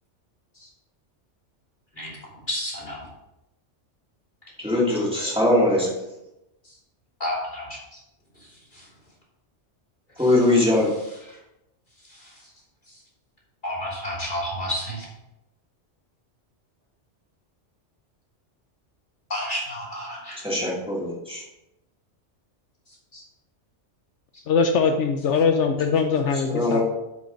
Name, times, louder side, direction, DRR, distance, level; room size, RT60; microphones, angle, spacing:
voice 1, 2.5-3.0 6.6-6.7 7.2-7.8 8.4-8.9 10.2-10.3 11.3-11.4 12.1-12.5 12.9-13.0 13.6-15.1 19.3-20.4 23.1-23.2 24.3-24.4, equal, 40° left, -5 dB, 3.3 m, -31 dB
voice 2, 4.6-5.9 10.2-10.9 20.4-21.4 26.5-26.8, left 1 dB, 5° right, -5 dB, 2.2 m, -21 dB
voice 3, 24.5-26.8, left 5 dB, 80° left, 5 dB, 1.0 m, -21 dB
8.3 x 5.2 x 5.2 m, 0.91 s
omnidirectional pair, 1.2 m